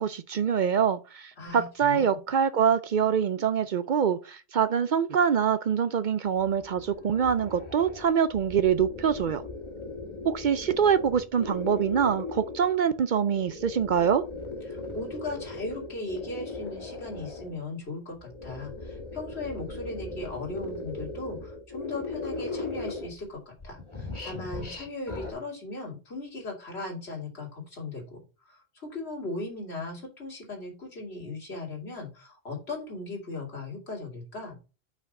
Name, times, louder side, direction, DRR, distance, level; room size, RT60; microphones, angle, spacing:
voice 1, 0.0-9.4 10.2-14.2, right 7 dB, 55° right, 0.6 m, -25 dB
voice 2, 1.4-2.2 14.7-34.6, left 2 dB, 85° left, 2.7 m, -38 dB
sound 1, 6.3-12.8 13.2-17.6 18.2-23.3 23.6-25.3, left 3 dB, 30° left, 1.7 m, -38 dB
5.9 x 4.7 x 5.2 m
omnidirectional pair, 1.1 m